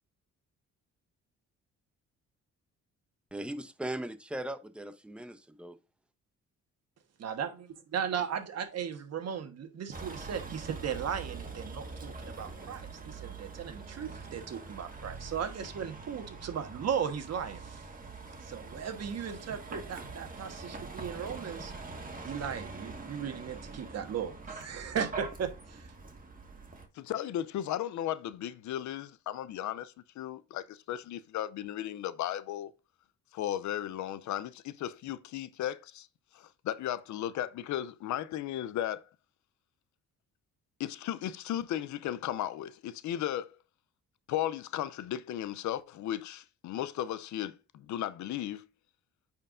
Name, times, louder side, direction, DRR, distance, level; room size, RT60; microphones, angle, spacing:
voice 1, 3.3-5.8, right 1 dB, 5° right, 0.7 m, -39 dB
voice 2, 7.2-7.5 7.9-17.8 18.4-21.7 22.2-25.8, right 7 dB, 55° right, 1.3 m, -36 dB
Vehicle, 9.9-26.9, right 4 dB, 30° right, 1.6 m, -44 dB
voice 3, 27.0-32.7 33.3-36.1 36.6-39.0 40.8-43.5 44.3-48.6, left 12 dB, 70° left, 0.6 m, -35 dB
8.8 x 4.5 x 2.5 m
cardioid pair, 90°, 30 cm